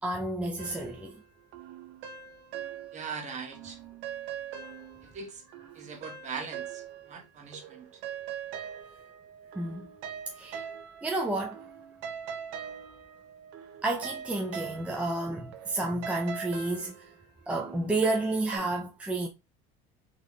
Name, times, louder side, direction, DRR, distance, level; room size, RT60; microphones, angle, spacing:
voice 1, 0.0-1.2 9.5-9.9 10.4-10.6 11.0-11.6 13.8-17.1 17.5-19.3, right 2 dB, 5° right, 0.6 m, -31 dB
sound 1, 0.6-3.2 3.5-7.3 7.5-18.6, right 8 dB, 65° right, 0.9 m, -42 dB
voice 2, 2.9-3.8 5.1-5.4 5.7-7.9, right 5 dB, 35° right, 1.6 m, -40 dB
4.1 x 3.4 x 3.2 m
supercardioid pair, 125°, 20 cm